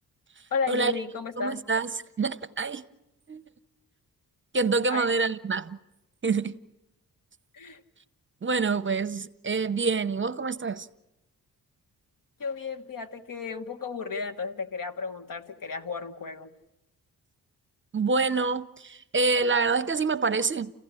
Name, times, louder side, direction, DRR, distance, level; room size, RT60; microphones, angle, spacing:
voice 1, 0.5-1.6 4.9-5.1 7.5-7.8 12.4-16.5, left 5 dB, 65° left, 1.7 m, -33 dB
voice 2, 1.4-1.9 2.2-2.8 3.3-3.4 4.5-5.8 6.2-6.5 8.4-10.9 17.9-20.7, right 4 dB, 35° right, 0.8 m, -26 dB
29.5 x 15.5 x 9.8 m
cardioid pair, 85°, 36 cm